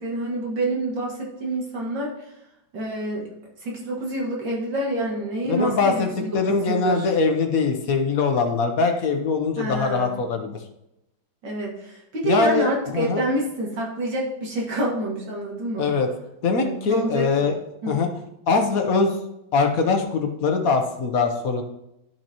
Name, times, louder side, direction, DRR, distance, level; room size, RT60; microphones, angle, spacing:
voice 1, 0.0-2.1 2.7-3.3 3.6-7.1 9.6-10.2 11.4-15.9 16.5-17.5 17.8-18.0, right 1 dB, 60° right, -3 dB, 2.8 m, -27 dB
voice 2, 5.5-10.6 12.2-13.2 15.8-16.1 16.4-17.5 17.9-18.1 18.5-19.2 19.5-21.6, left 4 dB, 55° left, 5 dB, 1.1 m, -22 dB
12.0 x 5.8 x 3.0 m, 0.86 s
omnidirectional pair, 2.3 m